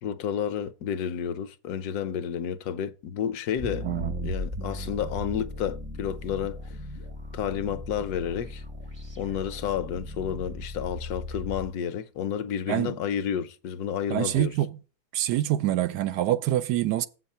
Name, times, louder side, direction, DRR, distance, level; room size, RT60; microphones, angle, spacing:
voice 1, 0.0-3.9 4.2-6.6 7.3-8.6 9.2-14.5, left 8 dB, 75° left, 1.2 m, -31 dB
sound 1, 3.6-11.7, left 1 dB, 25° right, 0.7 m, -37 dB
voice 2, 12.7-13.0 14.1-14.8 15.1-17.1, right 13 dB, 85° right, 1.2 m, -26 dB
7.9 x 6.4 x 5.5 m
omnidirectional pair, 1.7 m